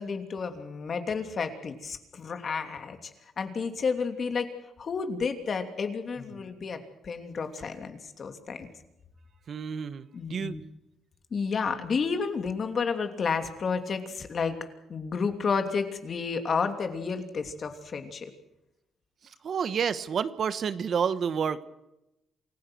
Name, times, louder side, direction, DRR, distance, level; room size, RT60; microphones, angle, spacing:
voice 1, 0.0-3.1 3.4-4.5 4.8-8.7 10.1-10.6 11.3-14.6 14.9-18.3, left 5 dB, 45° left, 6 dB, 2.9 m, -31 dB
voice 2, 9.5-10.5 19.4-21.6, right 7 dB, 55° right, 13 dB, 1.2 m, -29 dB
28.0 x 16.0 x 6.2 m, 0.89 s
cardioid pair, 90°, 0 cm